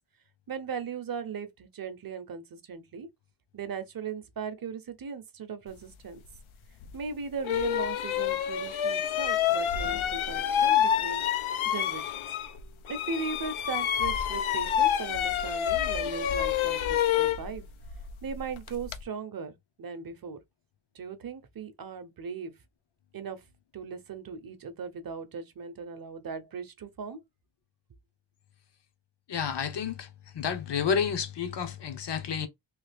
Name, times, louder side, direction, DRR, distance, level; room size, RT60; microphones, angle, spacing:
voice 1, 0.5-3.1 3.5-6.2 6.9-11.2 11.6-12.2 12.9-17.6 18.2-20.4 20.9-22.5 23.1-23.4 23.7-27.2, right 5 dB, 50° right, 0.7 m, -38 dB
sound 1, 6.8-6.9 7.4-12.6 12.9-19.0, left 10 dB, 85° left, 0.6 m, -28 dB
voice 2, 29.3-30.1 30.3-32.5, left 7 dB, 60° left, 0.9 m, -30 dB
3.2 x 2.4 x 3.3 m
wide cardioid pair, 115°, 47 cm